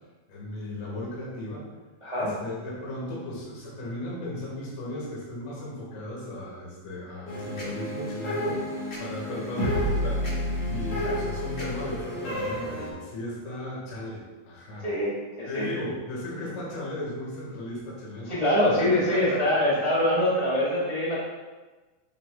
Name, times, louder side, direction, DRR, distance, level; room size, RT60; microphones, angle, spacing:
voice 1, 0.3-1.6 2.2-10.2 10.7-14.9 15.5-20.0, left 1 dB, 85° left, -5 dB, 5.0 m, -36 dB
voice 2, 2.0-2.3 11.0-11.1 14.8-15.7 18.2-21.2, left 1 dB, 85° right, -8 dB, 0.4 m, -24 dB
sound 1, 7.3-12.9, equal, 70° left, 1.0 m, -30 dB
10.5 x 6.4 x 2.6 m, 1.2 s
omnidirectional pair, 5.6 m